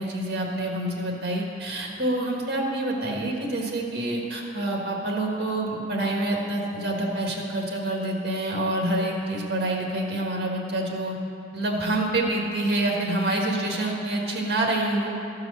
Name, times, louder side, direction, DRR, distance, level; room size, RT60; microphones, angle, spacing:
voice 1, 0.0-11.1 11.5-15.1, right 1 dB, 65° right, 0 dB, 1.6 m, -27 dB
13.5 x 4.8 x 6.4 m, 2.7 s
head